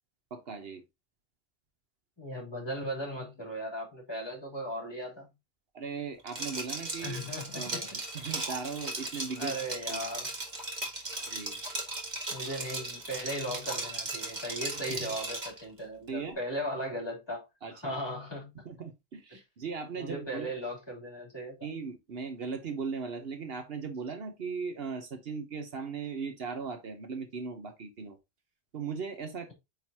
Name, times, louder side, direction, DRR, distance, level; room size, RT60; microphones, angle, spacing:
voice 1, 0.3-0.8 5.7-7.2 7.5-9.5 9.9-10.1 11.3-11.6 14.9-15.1 16.1-16.4 17.6-18.0 18.6-20.5 21.6-28.2 28.7-29.5, right 5 dB, 65° right, 1.1 m, -38 dB
voice 2, 2.2-5.3 7.0-8.0 9.4-10.3 12.3-18.5 19.3-19.4 19.9-21.6, equal, 25° left, 3.1 m, -37 dB
Liquid, 6.3-15.6, right 2 dB, 40° right, 1.9 m, -37 dB
8.8 x 3.9 x 2.8 m
omnidirectional pair, 1.1 m